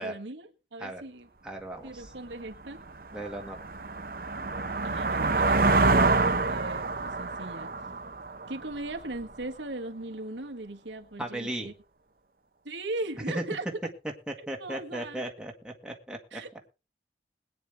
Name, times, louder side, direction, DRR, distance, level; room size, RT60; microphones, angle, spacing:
voice 1, 0.0-1.3 1.8-2.8 4.8-7.7 8.5-11.7 12.6-13.7 14.6-15.2 16.3-16.5, right 2 dB, 85° right, 1.6 m, -39 dB
voice 2, 1.4-2.1 3.1-3.6 11.2-11.7 13.3-13.4 14.3-16.4, right 1 dB, 5° right, 1.9 m, -36 dB
sound 1, 2.0-2.1 2.6-9.2, right 3 dB, 50° right, 1.0 m, -27 dB
21.0 x 9.4 x 3.5 m
head